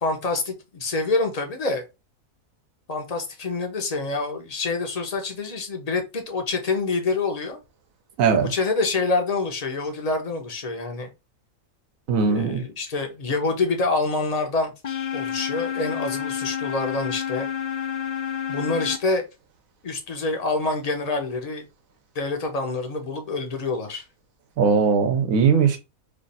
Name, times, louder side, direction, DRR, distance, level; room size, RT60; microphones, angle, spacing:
voice 1, 0.0-1.8 2.9-7.6 8.5-11.1 12.2-14.7 15.1-17.5 18.5-19.2 19.8-21.6 22.1-24.0, left 3 dB, 35° left, 0.7 m, -26 dB
voice 2, 8.2-8.5 12.1-12.6 24.6-25.8, right 5 dB, 75° right, 1.2 m, -19 dB
sound 1, 14.8-19.0, left 8 dB, 70° left, 0.3 m, -29 dB
3.2 x 2.4 x 4.0 m
omnidirectional pair, 1.5 m